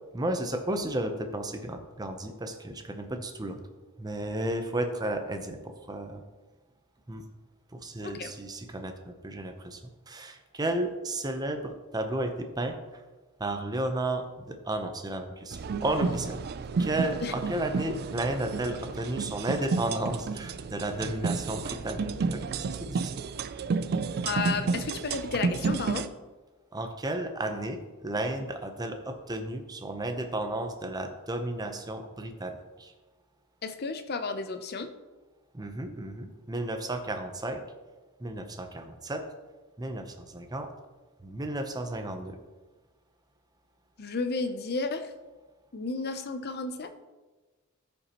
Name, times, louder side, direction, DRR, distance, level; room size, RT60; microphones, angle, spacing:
voice 1, 0.1-3.6 4.0-6.2 7.1-7.2 7.7-9.8 10.1-12.7 13.4-16.4 16.8-23.2 26.7-32.9 35.5-37.6 38.2-39.3 39.8-40.7 41.2-42.4, right 1 dB, 20° right, 6 dB, 0.7 m, -33 dB
sound 1, 15.5-26.1, right 4 dB, 45° right, 0.3 m, -31 dB
voice 2, 24.2-26.1 33.6-34.9 44.0-45.1 45.7-46.9, left 4 dB, 50° left, 9 dB, 0.6 m, -32 dB
14.0 x 5.3 x 3.0 m, 1.2 s
head